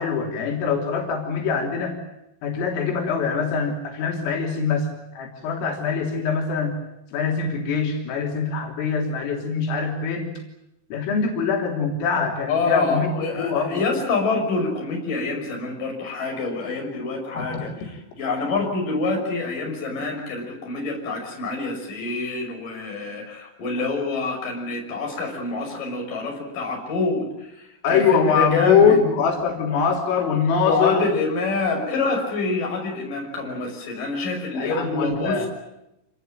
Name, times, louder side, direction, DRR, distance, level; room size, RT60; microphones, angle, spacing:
voice 1, 0.0-2.0 2.4-6.8 7.1-10.4 10.9-13.8 17.3-17.4 27.8-31.1 34.5-35.5, left 6 dB, 85° left, 1 dB, 5.9 m, -23 dB
voice 2, 12.5-29.0 30.6-35.5, left 3 dB, 40° left, 1 dB, 7.4 m, -26 dB
28.0 x 19.5 x 9.1 m, 0.86 s
omnidirectional pair, 5.8 m